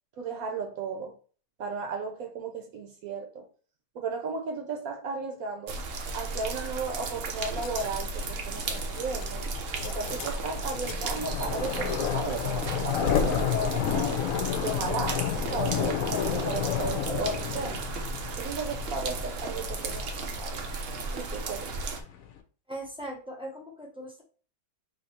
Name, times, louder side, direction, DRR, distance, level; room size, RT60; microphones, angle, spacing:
voice 1, 0.2-1.1 1.6-3.4 3.9-5.8 6.1-9.5 9.8-14.1 14.6-15.2 15.5-17.8 18.4-20.7 21.1-21.9, right 4 dB, 65° right, 4 dB, 1.0 m, -35 dB
sound 1, 5.7-22.0, right 3 dB, 80° right, 0.5 m, -35 dB
sound 2, 7.4-14.6, left 5 dB, 80° left, 1.2 m, -40 dB
sound 3, 8.5-22.4, left 9 dB, 65° left, 0.9 m, -32 dB
voice 2, 22.7-24.2, right 1 dB, 5° right, 0 dB, 0.5 m, -39 dB
3.6 x 2.7 x 4.2 m, 0.40 s
omnidirectional pair, 1.8 m